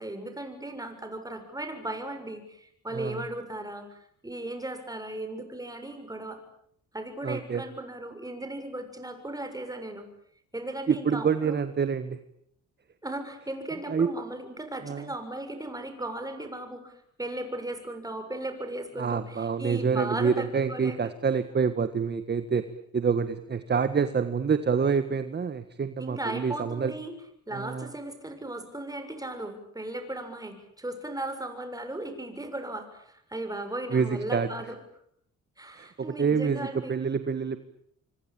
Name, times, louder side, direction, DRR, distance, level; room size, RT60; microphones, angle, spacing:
voice 1, 0.0-6.4 6.9-10.0 10.5-11.6 13.0-21.0 26.0-27.1 27.5-34.8 35.6-37.0, right 1 dB, 10° right, 7 dB, 7.0 m, -37 dB
voice 2, 2.9-3.2 7.2-7.6 10.9-12.2 13.9-14.1 14.8-15.1 19.0-22.7 22.9-26.9 27.5-27.9 33.9-34.5 35.8-37.6, right 6 dB, 35° right, 11 dB, 1.6 m, -27 dB
26.0 x 25.0 x 8.8 m, 0.69 s
cardioid pair, 90°, 30 cm